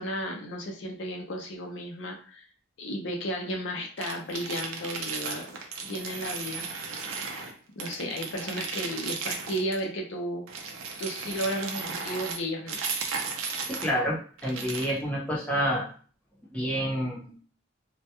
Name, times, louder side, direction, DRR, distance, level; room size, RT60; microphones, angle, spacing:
voice 1, 0.0-2.4 2.8-5.5 5.8-6.7 7.3-7.5 7.8-10.4 11.0-12.8, equal, 65° left, 2 dB, 0.5 m, -33 dB
sound 1, 4.0-7.5 7.8-9.8 10.5-13.9 14.4-15.0, right 5 dB, 85° right, 0.5 m, -35 dB
voice 2, 13.7-15.8 16.5-17.3, equal, 5° left, -6 dB, 0.6 m, -28 dB
2.1 x 2.1 x 2.8 m, 0.41 s
head